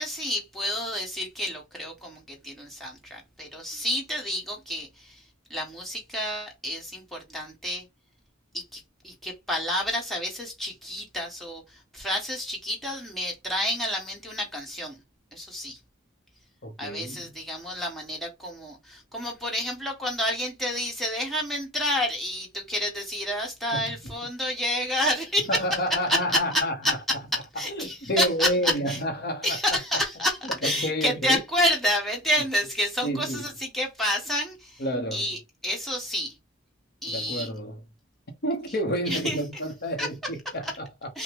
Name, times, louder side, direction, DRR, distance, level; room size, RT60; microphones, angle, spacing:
voice 1, 0.0-5.2 5.5-7.8 8.5-15.0 15.3-15.8 16.8-25.6 26.1-26.6 27.6-29.0 29.4-34.8 35.1-36.3 37.0-37.5 39.1-39.4 40.0-40.1 40.6-40.7 41.1-41.2, equal, ahead, 1.2 m, -29 dB
voice 2, 16.6-17.3 23.7-24.1 25.5-27.2 27.5-29.8 30.4-31.4 33.0-33.5 34.8-35.3 37.1-37.8 38.4-41.2, equal, 45° left, 0.8 m, -30 dB
5.7 x 2.1 x 3.5 m
head